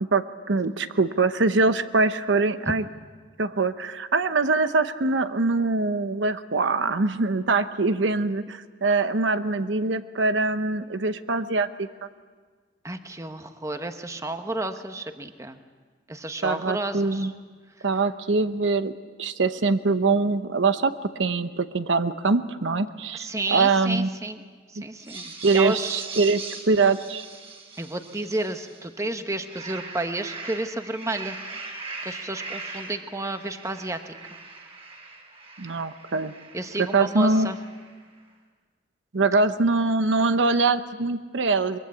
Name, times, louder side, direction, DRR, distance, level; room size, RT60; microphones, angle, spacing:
voice 1, 0.0-2.8 3.4-11.9 16.4-17.3 17.8-18.9 19.2-20.9 21.2-24.1 25.4-27.3 35.6-36.3 36.8-37.5 39.1-41.8, right 3 dB, 75° right, 11 dB, 0.9 m, -23 dB
voice 2, 12.8-15.6 16.1-17.3 23.1-24.4 24.7-26.0 27.8-31.4 32.0-34.1 36.5-37.6, right 2 dB, 15° right, 8 dB, 1.1 m, -31 dB
sound 1, 25.0-28.9 29.3-38.0, right 3 dB, 30° right, 3.7 m, -40 dB
23.5 x 22.5 x 8.5 m, 1.5 s
head